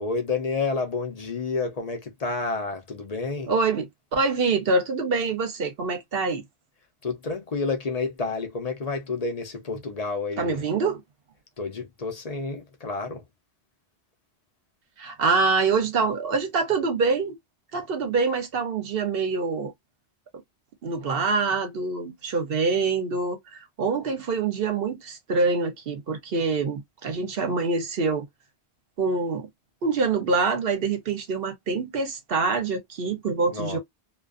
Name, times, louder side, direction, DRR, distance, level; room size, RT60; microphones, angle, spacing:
voice 1, 0.0-3.5 7.0-10.6 11.6-13.2 33.5-33.8, left 4 dB, 45° left, 0.6 m, -30 dB
voice 2, 3.5-3.9 4.1-6.4 10.4-11.0 15.0-17.3 17.7-19.7 20.8-28.3 29.0-29.5 29.8-33.8, right 4 dB, 65° right, 0.8 m, -25 dB
2.4 x 2.3 x 2.3 m
omnidirectional pair, 1.1 m